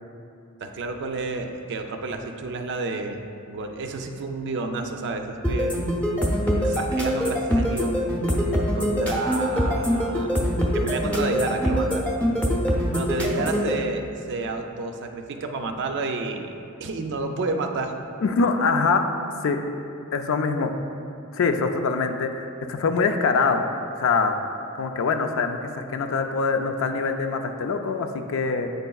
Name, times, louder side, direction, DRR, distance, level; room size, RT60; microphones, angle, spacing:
voice 1, 0.6-3.2 3.5-5.8 6.4-8.0 8.8-10.3 10.7-12.0 12.9-16.5 16.8-18.0, right 3 dB, 55° right, 5 dB, 0.4 m, -30 dB
sound 1, 5.4-13.7, equal, 5° left, 0.7 m, -23 dB
voice 2, 18.2-19.1 19.4-19.6 20.1-20.7 21.3-23.7 24.0-24.4 24.7-28.7, left 4 dB, 65° left, 6 dB, 0.4 m, -24 dB
7.8 x 5.3 x 2.3 m, 2.7 s
head